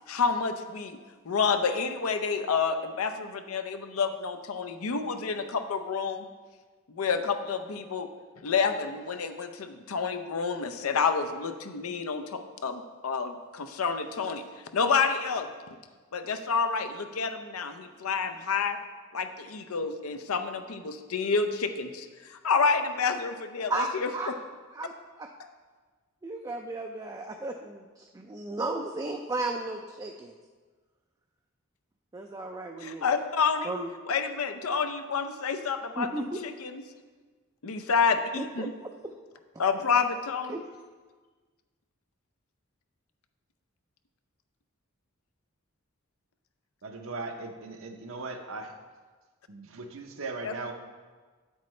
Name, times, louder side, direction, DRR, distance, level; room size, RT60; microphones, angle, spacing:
voice 1, 0.1-1.0 1.3-6.3 6.9-8.1 8.4-14.4 14.7-15.5 16.1-18.8 19.1-24.3 32.8-33.7 34.1-36.8 37.6-38.7 39.6-40.5 50.4-50.5, left 5 dB, 85° left, 8 dB, 0.6 m, -29 dB
voice 2, 23.7-24.3 24.7-24.9 25.2-25.3 26.2-30.3 32.1-33.1 33.6-33.9 36.0-36.4 38.3-38.9 40.5-40.6, right 2 dB, 15° right, 2 dB, 0.3 m, -34 dB
voice 3, 46.8-48.8 49.5-50.7, right 3 dB, 70° right, 4 dB, 0.8 m, -38 dB
8.8 x 8.1 x 3.2 m, 1.4 s
head